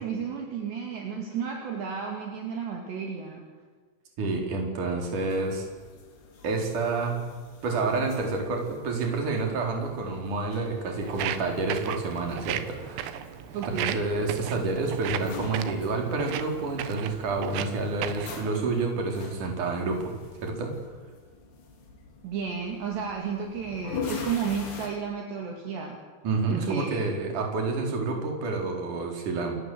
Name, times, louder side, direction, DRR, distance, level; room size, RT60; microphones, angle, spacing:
voice 1, 0.0-3.4 13.5-14.0 22.2-26.0 26.5-27.0, right 6 dB, 60° right, 1 dB, 4.5 m, -32 dB
voice 2, 4.2-5.7 6.4-7.3 7.6-13.2 13.8-20.2 20.4-20.8 26.2-29.5, right 3 dB, 40° right, 2 dB, 5.2 m, -29 dB
sound 1, 5.1-24.9, left 5 dB, 55° left, 5.5 m, -44 dB
Walk footsteps, 11.0-18.4, right 11 dB, 80° right, 3.9 m, -36 dB
28.5 x 23.0 x 8.0 m, 1.4 s
omnidirectional pair, 6.0 m